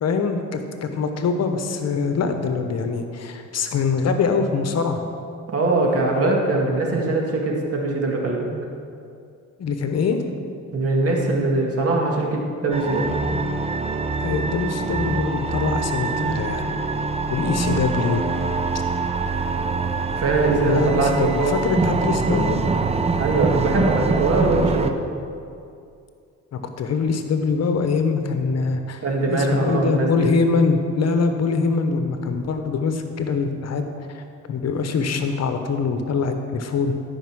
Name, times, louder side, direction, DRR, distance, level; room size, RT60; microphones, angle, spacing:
voice 1, 0.0-5.0 9.6-10.2 14.2-16.6 17.3-18.3 20.6-22.6 26.5-34.2 34.5-37.0, left 4 dB, 60° left, 7 dB, 1.0 m, -23 dB
voice 2, 5.5-8.5 10.7-13.1 16.1-16.4 20.2-21.6 23.2-24.9 29.0-30.3, right 2 dB, 50° right, 0 dB, 2.0 m, -21 dB
sound 1, 12.7-24.9, right 4 dB, 20° right, 0.6 m, -24 dB
13.0 x 5.5 x 6.2 m, 2.4 s
cardioid pair, 90°, 30 cm